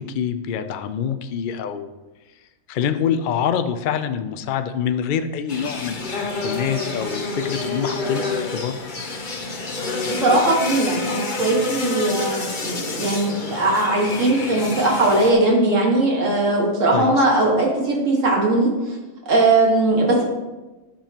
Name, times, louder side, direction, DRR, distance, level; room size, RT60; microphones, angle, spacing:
voice 1, 0.0-1.9 2.7-8.8 16.9-17.3, left 8 dB, 65° left, 9 dB, 0.5 m, -26 dB
sound 1, 5.5-15.3, left 3 dB, 40° left, 1.0 m, -28 dB
voice 2, 10.1-19.0 19.3-20.2, right 2 dB, 65° right, -2 dB, 2.0 m, -19 dB
10.0 x 6.9 x 2.9 m, 1.1 s
omnidirectional pair, 1.4 m